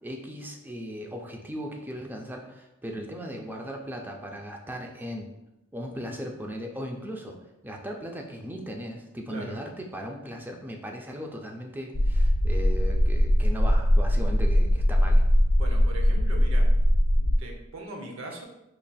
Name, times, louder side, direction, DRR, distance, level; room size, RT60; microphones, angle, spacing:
voice 1, 0.0-5.3 5.7-7.4 7.6-15.2, equal, 10° right, 2 dB, 0.4 m, -37 dB
sound 1, 11.9-17.4, equal, 85° left, 0.6 m, -21 dB
voice 2, 15.6-16.7 17.1-18.4, right 2 dB, 80° right, 1 dB, 0.7 m, -40 dB
4.1 x 3.1 x 2.3 m, 0.90 s
head